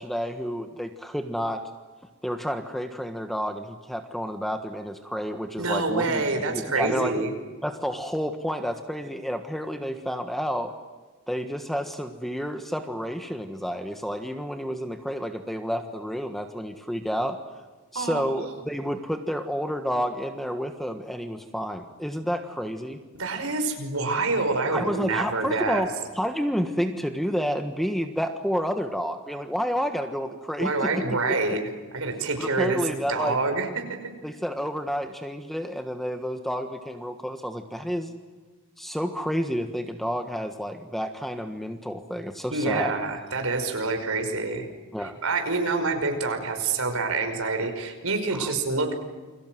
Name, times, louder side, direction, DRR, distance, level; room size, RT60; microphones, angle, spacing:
voice 1, 0.0-1.6 2.2-7.2 7.6-10.7 11.3-17.4 17.9-23.0 24.7-25.9 26.1-31.0 32.4-33.4 34.2-38.1 38.8-42.9 44.9-45.2 48.3-48.5, equal, ahead, 6 dB, 1.4 m, -30 dB
voice 2, 5.6-7.3 17.9-18.3 23.1-25.9 30.6-31.6 31.9-34.0 42.5-44.7 45.0-48.9, right 3 dB, 70° right, 5 dB, 5.5 m, -27 dB
29.5 x 23.0 x 7.8 m, 1.3 s
head